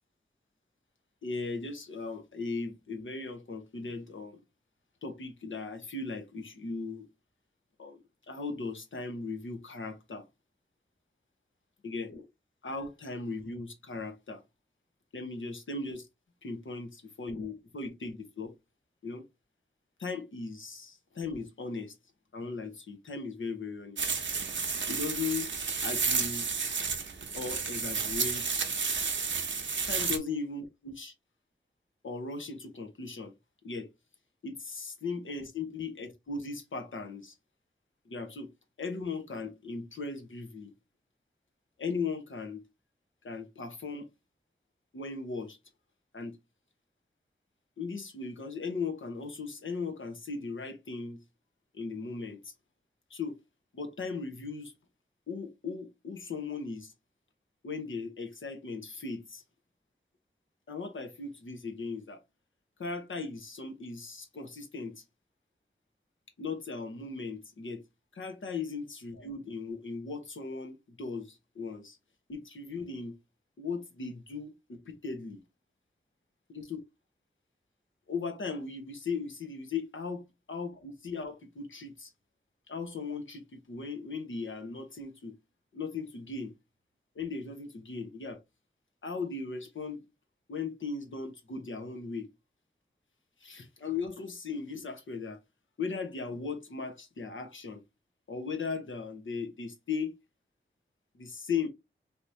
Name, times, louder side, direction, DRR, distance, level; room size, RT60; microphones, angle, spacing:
voice 1, 1.2-4.4 5.0-7.1 7.8-8.0 8.3-10.3 11.8-12.3 12.6-14.4 15.1-16.1 16.4-18.5 19.0-19.2 20.0-22.0 22.3-24.0 24.9-25.5 25.8-26.5 27.3-28.7 29.9-31.1 32.0-33.3 33.6-33.9 34.4-37.3 38.1-38.5 38.8-40.7 41.8-42.6 43.2-44.1 44.9-45.6 46.1-46.4 47.8-51.2 51.7-52.5 53.1-53.4 53.7-54.7 55.3-56.9 57.6-59.4 60.7-62.2 62.8-65.0 66.4-67.8 68.1-72.0 72.3-73.2 73.6-75.4 76.5-76.8 78.1-80.2 80.5-82.1 82.7-85.4 85.7-86.5 87.2-88.4 89.0-90.0 90.5-92.3 93.4-95.4 95.8-97.8 98.3-100.1 101.1-101.7, left 4 dB, 90° left, 0.9 m, -37 dB
sound 1, 24.0-30.2, right 5 dB, 70° right, 0.6 m, -31 dB
3.5 x 2.9 x 2.6 m
wide cardioid pair, 50°, 20 cm